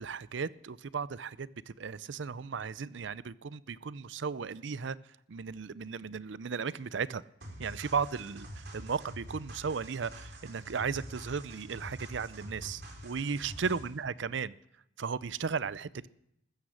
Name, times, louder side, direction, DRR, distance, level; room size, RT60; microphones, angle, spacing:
voice 1, 0.0-5.0 5.3-7.2 7.6-14.5 15.0-16.1, right 5 dB, 75° right, 18 dB, 0.5 m, -35 dB
sound 1, 7.4-14.0, right 1 dB, 55° right, 3.4 m, -46 dB
14.5 x 13.5 x 6.5 m, 0.78 s
head